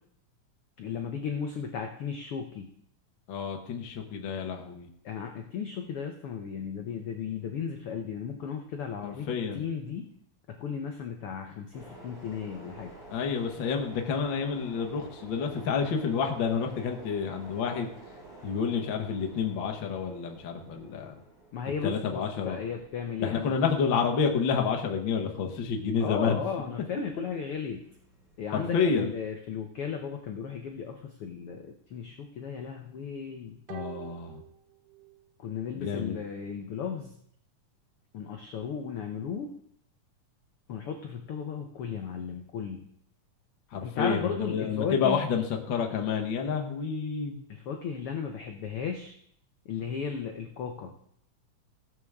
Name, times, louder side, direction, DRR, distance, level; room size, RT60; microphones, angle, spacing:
voice 1, 0.8-2.7 5.0-9.3 9.5-10.1 10.5-12.9 21.5-23.5 26.0-27.8 28.4-33.6 35.4-37.1 38.1-39.5 40.7-42.9 43.8-45.2 47.5-49.1 49.6-50.9, left 6 dB, 75° left, 4 dB, 1.2 m, -35 dB
voice 2, 3.3-4.9 9.0-9.7 13.1-17.9 18.4-21.1 21.8-22.6 23.2-26.4 28.5-29.1 33.7-34.4 35.8-36.2 43.7-47.3, left 6 dB, 60° left, 3 dB, 1.3 m, -29 dB
sound 1, 11.7-29.2, right 2 dB, 55° right, 7.0 m, -51 dB
sound 2, 33.7-35.3 35.6-35.7, right 14 dB, 80° right, 2.1 m, -46 dB
17.5 x 7.9 x 3.6 m, 0.68 s
omnidirectional pair, 3.8 m